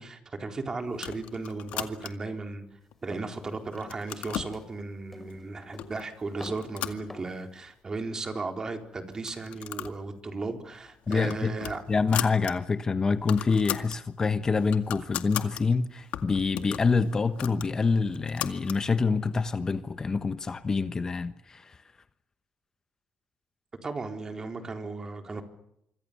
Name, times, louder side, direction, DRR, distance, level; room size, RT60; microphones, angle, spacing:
voice 1, 0.0-2.6 3.0-11.8 23.8-25.4, right 3 dB, 30° right, 4.2 m, -35 dB
sound 1, 0.9-2.4 2.9-3.4 3.7-4.6 5.3-5.4 5.8-6.1 6.4-7.6 8.0-8.1 8.3-8.4 9.1-10.0 10.3-10.5 10.9-12.5 12.9-13.0 13.2-14.0 14.4-15.6 16.1-18.8, left 12 dB, 85° left, 2.0 m, -37 dB
sound 2, 3.1-3.4 3.8-4.1 4.4-4.7 5.1-5.5 5.7-6.1 6.4-6.7 7.1-7.4, left 1 dB, 5° left, 5.2 m, -45 dB
voice 2, 11.1-11.5 11.9-21.8, left 4 dB, 30° left, 1.2 m, -26 dB
27.0 x 25.5 x 7.0 m
cardioid pair, 115°, 2 cm